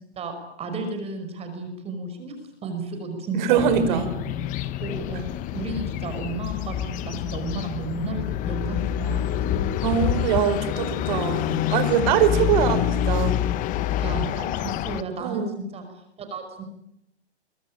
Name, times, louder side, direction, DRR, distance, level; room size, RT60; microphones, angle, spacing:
voice 1, 0.6-2.4 2.6-4.3 4.8-5.2 5.5-9.4 11.2-11.3 12.5-12.8 14.0-15.8 16.2-16.6, right 3 dB, 20° right, 6 dB, 5.6 m, -33 dB
voice 2, 3.3-4.1 9.8-12.8 13.1-13.4 15.2-15.6, right 8 dB, 45° right, 11 dB, 4.6 m, -23 dB
bird sounds, 3.6-15.0, left 11 dB, 25° left, 1.2 m, -27 dB
26.5 x 23.5 x 8.8 m, 0.78 s
hypercardioid pair, 140°, 33 cm